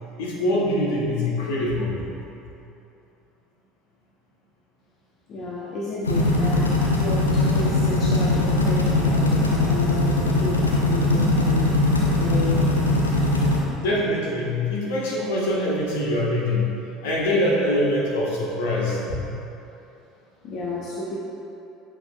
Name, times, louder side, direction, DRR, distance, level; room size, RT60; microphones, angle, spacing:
voice 1, 0.2-2.5 13.8-16.7 17.0-19.3, left 1 dB, 70° left, -5 dB, 1.3 m, -24 dB
voice 2, 5.3-11.7 12.2-12.7 20.4-21.2, left 2 dB, 45° left, -6 dB, 0.9 m, -32 dB
sound 1, 6.0-13.6, left 2 dB, 85° left, 0.6 m, -20 dB
7.8 x 6.2 x 2.3 m, 2.8 s
figure-of-eight pair, 65°, 0 cm